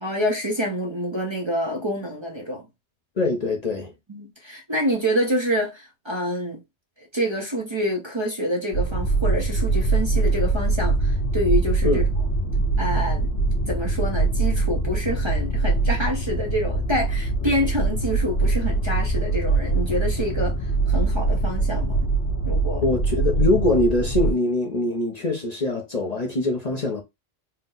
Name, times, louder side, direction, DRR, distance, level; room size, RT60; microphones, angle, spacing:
voice 1, 0.0-2.7 4.1-6.6 7.0-12.1 12.8-13.3 13.7-22.0 22.5-22.9, equal, 25° right, 0.9 m, -27 dB
voice 2, 3.2-3.9 11.8-12.0 22.8-27.0, left 2 dB, 40° left, 0.8 m, -23 dB
sound 1, 8.7-24.3, right 3 dB, 80° left, 2.1 m, -23 dB
4.4 x 2.2 x 3.8 m
omnidirectional pair, 1.1 m